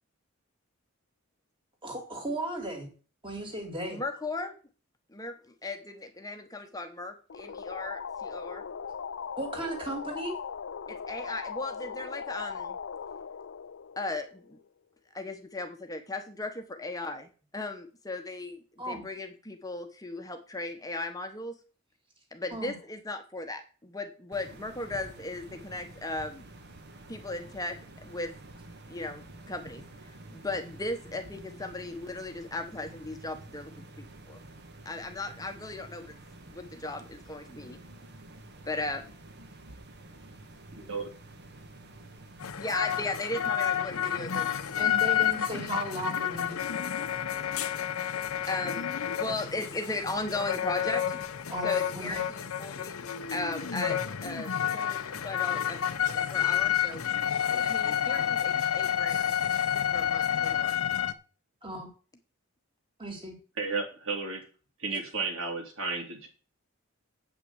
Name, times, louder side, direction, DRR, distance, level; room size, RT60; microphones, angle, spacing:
voice 1, 1.8-2.9 3.2-4.0 9.4-10.4 18.8-19.0 22.5-22.8 44.8-46.6 51.5-52.2 61.6-61.9 63.0-63.4, right 1 dB, 25° right, 3 dB, 2.7 m, -36 dB
voice 2, 3.9-4.5 5.1-8.6 10.9-12.8 14.0-14.6 15.1-21.6 22.3-26.5 27.1-28.3 28.9-33.8 34.3-34.4 34.8-36.2 36.5-37.8 38.6-39.1 42.6-44.9 48.4-51.2 51.6-53.0 53.3-55.8 56.1-57.0 57.5-59.4 59.9-60.8 64.9-65.0, left 2 dB, 15° left, 6 dB, 1.0 m, -37 dB
sound 1, 7.3-14.7, left 6 dB, 60° left, 0.4 m, -39 dB
sound 2, 24.3-42.5, right 2 dB, 50° right, 1.3 m, -49 dB
voice 3, 40.7-41.1 63.6-64.4 64.8-66.3, right 4 dB, 70° right, 3 dB, 3.0 m, -33 dB
sound 3, 42.4-61.1, left 9 dB, 85° left, 0.7 m, -30 dB
8.2 x 5.9 x 8.0 m, 0.37 s
head